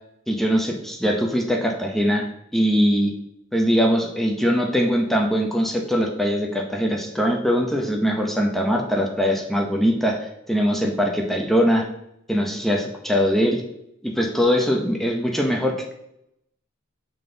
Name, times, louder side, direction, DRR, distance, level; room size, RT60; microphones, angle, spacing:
voice 1, 0.3-2.3 2.5-3.1 3.5-11.9 12.3-13.6 14.0-15.9, equal, ahead, 1 dB, 0.7 m, -21 dB
7.4 x 3.8 x 3.9 m, 0.79 s
head